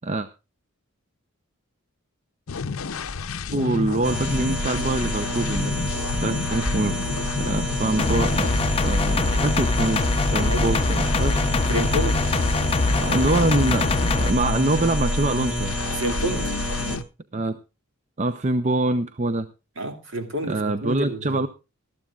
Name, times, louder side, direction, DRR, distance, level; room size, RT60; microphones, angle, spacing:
sound 1, 2.5-17.0, left 4 dB, 65° left, 0.6 m, -30 dB
voice 1, 3.5-5.8 6.2-7.0 7.4-8.5 8.8-10.0 10.3-11.5 12.9-13.9 14.1-15.8 17.3-17.6 18.2-19.5 20.5-21.5, right 2 dB, 30° right, 0.6 m, -24 dB
sound 2, 4.0-17.0, equal, 5° right, 1.4 m, -29 dB
sound 3, 8.0-14.3, left 3 dB, 25° left, 0.6 m, -24 dB
voice 2, 10.3-10.8 11.7-12.2 16.0-16.5 19.8-21.4, right 1 dB, 60° right, 2.5 m, -29 dB
20.0 x 13.0 x 2.4 m
head